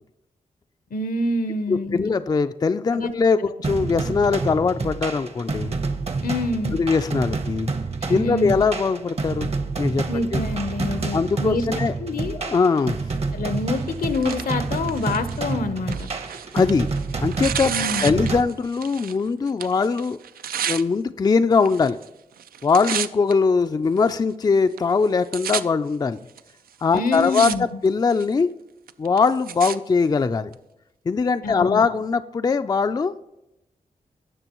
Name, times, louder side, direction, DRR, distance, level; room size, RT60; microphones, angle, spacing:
voice 1, 0.9-2.1 2.9-3.1 3.4-3.5 6.2-6.8 8.0-8.6 10.1-12.4 13.3-16.1 17.6-18.2 26.9-27.8 31.4-31.9, left 2 dB, 80° left, 10 dB, 0.8 m, -27 dB
voice 2, 1.7-5.7 6.7-7.7 8.1-9.5 9.8-10.0 10.3-10.4 11.1-11.9 12.4-13.0 16.5-16.9 17.2-17.7 18.0-20.2 20.7-22.0 22.6-26.2 26.8-28.5 29.0-30.5 31.1-33.2, left 4 dB, 25° left, 10 dB, 0.3 m, -21 dB
sound 1, 3.6-18.4, right 3 dB, 45° right, 0.9 m, -28 dB
Tearing, 13.7-19.2 19.5-20.8 21.6-22.1 22.4-23.3 24.0-24.1 24.8-24.9 25.0-25.6 26.4-26.5 27.0-27.6 27.9-28.3 28.9-29.8 30.5-30.6, right 8 dB, 90° right, 0.4 m, -31 dB
17.5 x 6.2 x 3.0 m, 0.92 s
wide cardioid pair, 100°, 15 cm